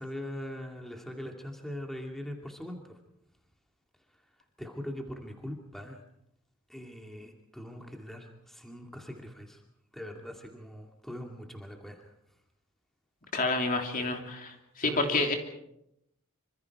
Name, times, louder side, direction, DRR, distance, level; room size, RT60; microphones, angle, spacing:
voice 1, 0.0-3.0 4.6-6.0 6.7-9.6 9.9-12.1 14.0-14.2 14.8-15.3, equal, ahead, 2 dB, 2.4 m, -41 dB
voice 2, 13.3-14.5 14.8-15.3, left 3 dB, 40° left, 3 dB, 3.1 m, -28 dB
26.5 x 25.5 x 4.8 m, 0.80 s
head